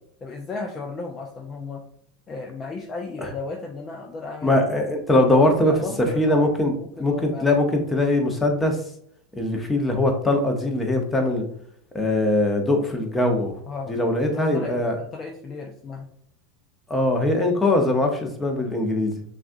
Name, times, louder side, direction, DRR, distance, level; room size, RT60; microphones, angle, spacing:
voice 1, 0.2-1.8 2.3-4.6 5.2-6.5 6.8-7.6 13.7-14.0 14.3-16.1, left 4 dB, 30° left, 1 dB, 0.6 m, -34 dB
voice 2, 4.4-8.8 9.4-11.4 11.9-13.5 13.9-15.0 16.9-19.2, left 1 dB, 10° left, 3 dB, 0.9 m, -21 dB
5.9 x 2.4 x 2.7 m, 0.64 s
hypercardioid pair, 105°, 0 cm